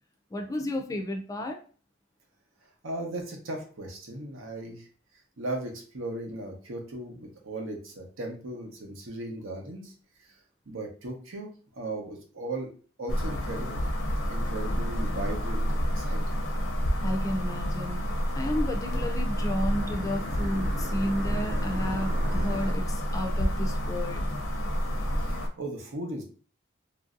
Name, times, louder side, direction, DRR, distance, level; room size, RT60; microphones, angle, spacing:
voice 1, 0.3-1.6 17.0-18.0 18.3-24.3, left 1 dB, 15° left, 3 dB, 0.3 m, -32 dB
voice 2, 2.8-4.9 5.4-9.9 10.2-10.3 10.7-12.7 13.0-13.8 14.1-16.3 25.2-26.2, right 2 dB, 85° right, 2 dB, 0.8 m, -37 dB
sound 1, 13.1-25.5, equal, 85° left, 0.6 m, -29 dB
sound 2, 17.7-22.7, right 1 dB, 45° right, 0.5 m, -41 dB
3.0 x 2.6 x 2.4 m, 0.40 s
head